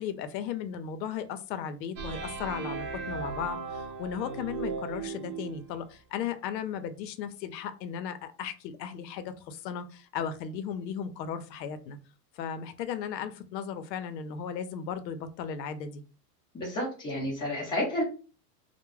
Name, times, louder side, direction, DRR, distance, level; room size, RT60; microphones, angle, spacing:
voice 1, 0.0-12.0 12.3-16.0, left 8 dB, 80° left, 11 dB, 0.6 m, -36 dB
sound 1, 2.0-5.7, right 5 dB, 45° right, 0.6 m, -37 dB
voice 2, 16.5-18.0, left 1 dB, 10° left, -4 dB, 0.5 m, -30 dB
2.2 x 2.1 x 3.1 m, 0.36 s
supercardioid pair, 155°, 49 cm